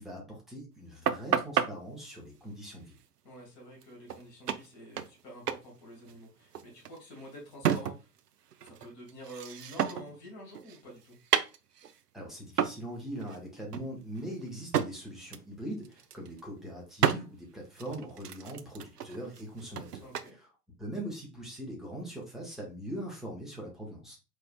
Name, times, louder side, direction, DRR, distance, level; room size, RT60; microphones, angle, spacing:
voice 1, 0.0-3.0 12.1-20.5 20.8-24.2, right 1 dB, ahead, -2 dB, 0.7 m, -41 dB
sound 1, 1.1-1.7 3.8-3.9 4.1-4.2 4.5-5.2 5.5-5.7 5.9-8.2 8.5-10.2 10.5-12.0 12.6-12.8 13.2-13.4 13.7-14.9 15.3-15.5 15.8-16.4 17.0-17.2 17.8-20.3, right 8 dB, 70° right, 0.6 m, -31 dB
voice 2, 3.2-8.1 8.6-11.1 20.0-20.4, equal, 35° left, -3 dB, 2.3 m, -48 dB
4.5 x 3.3 x 2.3 m, 0.29 s
figure-of-eight pair, 105°, 49 cm